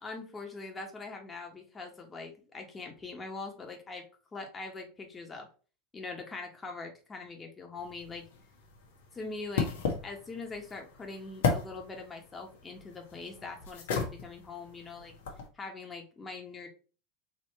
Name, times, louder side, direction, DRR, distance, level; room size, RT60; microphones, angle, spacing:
voice 1, 0.0-4.0 4.3-5.5 5.9-8.2 9.1-9.7 10.0-15.1 15.5-16.7, left 3 dB, 20° left, 2 dB, 1.5 m, -42 dB
sound 1, 7.8-15.5, left 5 dB, 75° left, 1.2 m, -36 dB
3.9 x 2.9 x 4.2 m, 0.37 s
hypercardioid pair, 85°, 0 cm